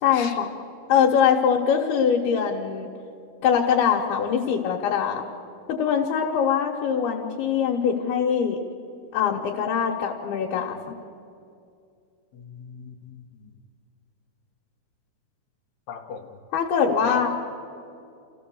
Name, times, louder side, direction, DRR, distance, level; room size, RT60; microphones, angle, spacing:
voice 1, 0.0-0.5 0.9-2.9 3.4-5.2 5.7-8.6 9.1-10.8 16.5-17.3, left 7 dB, 85° left, -1 dB, 3.2 m, -22 dB
voice 2, 12.3-13.5 15.9-16.3 17.0-17.2, left 7 dB, 60° left, 3 dB, 2.3 m, -38 dB
27.5 x 15.5 x 7.0 m, 2.4 s
omnidirectional pair, 4.4 m